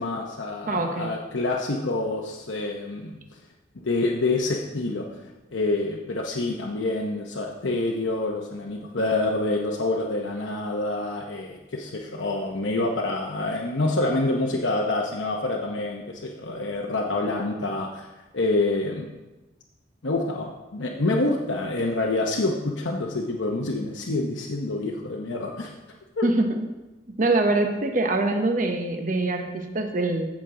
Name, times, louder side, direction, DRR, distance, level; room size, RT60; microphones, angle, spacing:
voice 1, 0.0-3.2 3.8-5.0 5.5-18.1 18.3-19.1 20.0-25.7 26.2-26.3, left 2 dB, 80° left, 0 dB, 0.9 m, -27 dB
voice 2, 0.7-1.1 26.2-26.7 27.2-30.3, right 2 dB, 45° right, 4 dB, 1.0 m, -24 dB
15.0 x 6.2 x 3.8 m, 1.1 s
head